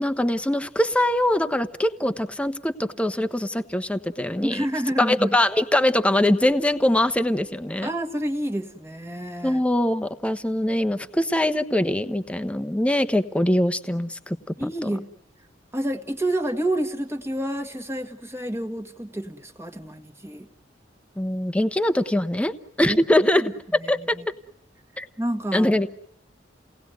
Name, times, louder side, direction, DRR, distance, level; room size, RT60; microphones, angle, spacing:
voice 1, 0.0-4.7 5.0-7.9 9.4-14.4 14.6-14.9 21.2-23.4 23.7-24.0 25.0-25.1 25.5-25.9, left 1 dB, 5° left, 10 dB, 1.1 m, -22 dB
voice 2, 4.4-5.4 7.8-9.6 14.6-15.1 15.7-20.5 22.8-23.0 23.4-23.5 23.8-24.3 25.2-25.7, right 1 dB, 15° right, 5 dB, 1.7 m, -29 dB
29.5 x 19.0 x 9.2 m, 0.77 s
head